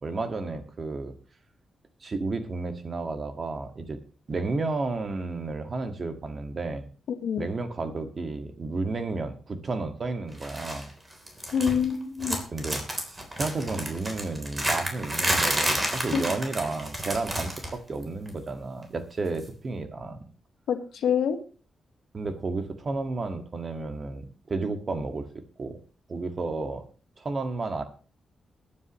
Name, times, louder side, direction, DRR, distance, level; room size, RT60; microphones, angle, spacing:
voice 1, 0.0-1.1 2.0-4.0 4.3-6.9 7.4-10.9 12.5-12.8 13.4-20.2 22.1-25.3 25.6-25.8 26.1-26.8 27.2-27.8, right 3 dB, 40° right, 7 dB, 1.9 m, -32 dB
voice 2, 7.1-7.5 11.5-12.4 16.1-16.3 20.7-21.4, left 7 dB, 80° left, 7 dB, 1.6 m, -26 dB
sound 1, 10.4-10.8 11.1-11.9 12.2-17.8 18.0-18.3 19.4-19.5, right 1 dB, 20° right, 3.6 m, -30 dB
22.0 x 9.6 x 3.1 m, 0.37 s
cardioid pair, 95°, 0 cm